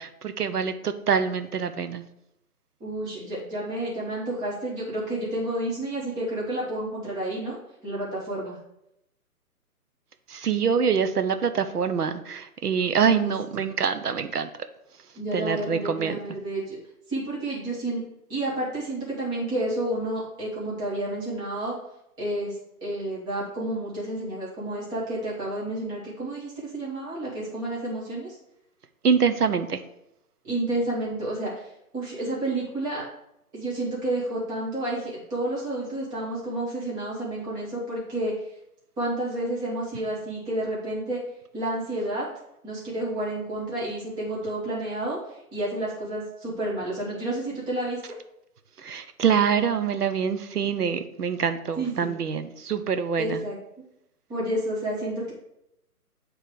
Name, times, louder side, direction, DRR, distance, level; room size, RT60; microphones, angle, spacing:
voice 1, 0.0-2.0 10.3-14.5 15.3-16.2 29.0-29.8 48.8-53.4, right 6 dB, 80° right, 9 dB, 0.8 m, -25 dB
voice 2, 2.8-7.6 7.8-8.6 13.0-13.6 15.1-16.8 17.1-18.0 18.3-21.7 22.2-28.4 30.4-33.0 33.5-38.3 39.0-41.2 41.5-42.3 42.6-48.1 51.8-52.1 53.2-53.6 54.3-55.3, right 1 dB, 10° right, -7 dB, 1.1 m, -30 dB
8.3 x 3.2 x 4.8 m, 0.81 s
figure-of-eight pair, 145°, 46 cm